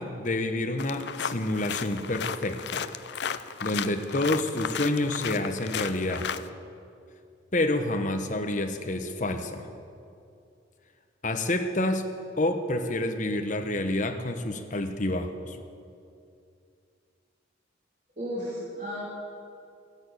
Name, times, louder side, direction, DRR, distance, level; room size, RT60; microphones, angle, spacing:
voice 1, 0.0-2.9 3.6-6.3 7.5-9.7 11.2-12.1 12.4-15.6, left 1 dB, 40° left, 6 dB, 1.1 m, -28 dB
sound 1, 0.8-6.5, left 7 dB, 65° left, 0.5 m, -34 dB
voice 2, 18.2-19.2, equal, 40° right, -9 dB, 3.5 m, -34 dB
14.5 x 10.5 x 8.3 m, 2.5 s
head